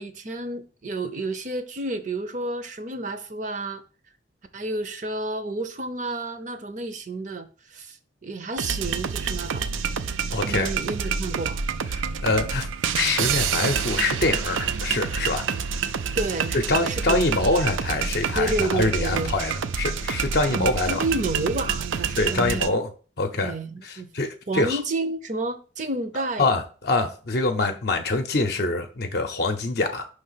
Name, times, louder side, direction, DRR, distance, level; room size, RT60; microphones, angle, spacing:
voice 1, 0.0-3.8 4.5-9.7 10.5-11.6 16.1-17.2 18.3-19.3 20.5-22.7 23.4-24.1 24.5-26.5, right 2 dB, 40° right, 0.6 m, -30 dB
sound 1, 8.6-22.7, right 6 dB, 85° right, 0.5 m, -28 dB
voice 2, 10.3-10.7 11.9-12.7 12.9-15.4 16.7-21.0 22.2-22.9 23.2-23.5 23.8-24.8 26.4-30.1, left 2 dB, 55° left, 0.6 m, -25 dB
5.6 x 3.3 x 5.6 m
head